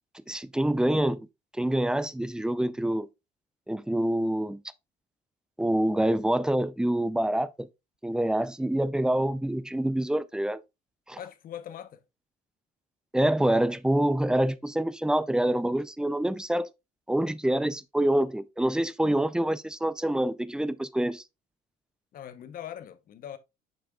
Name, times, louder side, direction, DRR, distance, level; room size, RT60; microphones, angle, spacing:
voice 1, 0.3-1.3 1.6-3.1 3.7-4.6 5.6-7.7 8.0-10.6 11.1-11.2 13.1-16.7 17.1-21.2, right 1 dB, 5° right, 0.4 m, -26 dB
voice 2, 11.1-12.0 22.1-23.4, left 10 dB, 55° left, 0.9 m, -41 dB
7.0 x 6.0 x 2.3 m
cardioid pair, 110°, 17 cm